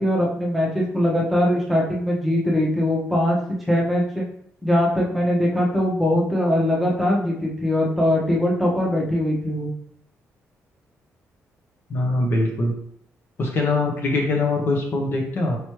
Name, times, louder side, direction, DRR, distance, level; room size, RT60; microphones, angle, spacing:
voice 1, 0.0-3.4 3.7-4.2 4.6-9.7, left 1 dB, ahead, -5 dB, 1.0 m, -21 dB
voice 2, 11.9-12.7 13.4-15.6, left 2 dB, 45° left, 0 dB, 0.9 m, -22 dB
4.7 x 3.0 x 3.1 m, 0.65 s
cardioid pair, 135°, 5 cm